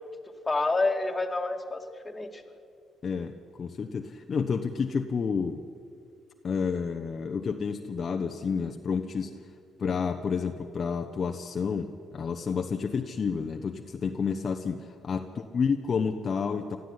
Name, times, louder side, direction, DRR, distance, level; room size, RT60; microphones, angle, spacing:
voice 1, 0.5-2.5, left 3 dB, 20° left, 3 dB, 2.2 m, -28 dB
voice 2, 3.0-5.6 6.4-9.4 9.8-16.8, left 5 dB, 45° left, 5 dB, 1.0 m, -30 dB
20.5 x 14.0 x 9.7 m, 2.4 s
cardioid pair, 90°, 0 cm